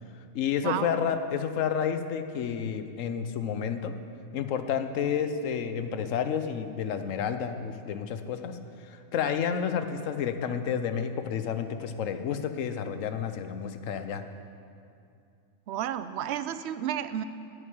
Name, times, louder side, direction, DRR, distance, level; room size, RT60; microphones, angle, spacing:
voice 1, 0.3-3.9 4.3-8.6 8.9-14.2, left 7 dB, 75° left, 9 dB, 1.1 m, -30 dB
voice 2, 15.7-17.2, right 10 dB, 65° right, 12 dB, 0.7 m, -31 dB
10.5 x 6.7 x 9.0 m, 2.5 s
omnidirectional pair, 1.4 m